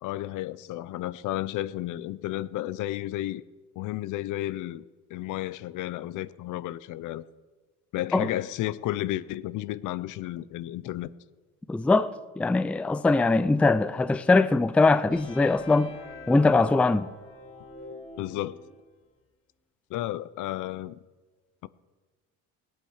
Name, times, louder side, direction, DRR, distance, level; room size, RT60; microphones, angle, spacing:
voice 1, 0.0-3.4 3.8-4.8 5.1-7.2 7.9-11.1 18.2-18.6 19.9-21.0 21.6-21.7, left 15 dB, 70° left, 0.6 m, -32 dB
voice 2, 11.7-15.9 16.3-17.1, left 3 dB, 5° left, 0.3 m, -22 dB
sound 1, 15.1-18.9, left 3 dB, 45° left, 2.6 m, -45 dB
17.5 x 8.8 x 6.4 m
cardioid pair, 120°, 31 cm